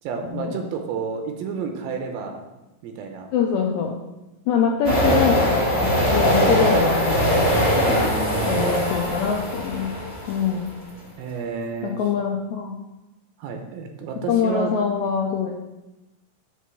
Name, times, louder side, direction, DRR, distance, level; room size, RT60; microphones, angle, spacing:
voice 1, 0.0-2.4 2.8-3.3 6.6-6.8 7.7-8.6 11.2-12.0 13.4-14.7, right 5 dB, 85° right, 4 dB, 2.5 m, -30 dB
voice 2, 3.3-4.0 4.5-7.6 8.5-9.9 10.3-10.7 11.8-12.8 14.3-15.5, left 6 dB, 85° left, 1 dB, 1.6 m, -24 dB
sound 1, 4.8-10.6, equal, 25° left, 0.7 m, -21 dB
8.0 x 3.0 x 5.9 m, 1.0 s
omnidirectional pair, 4.0 m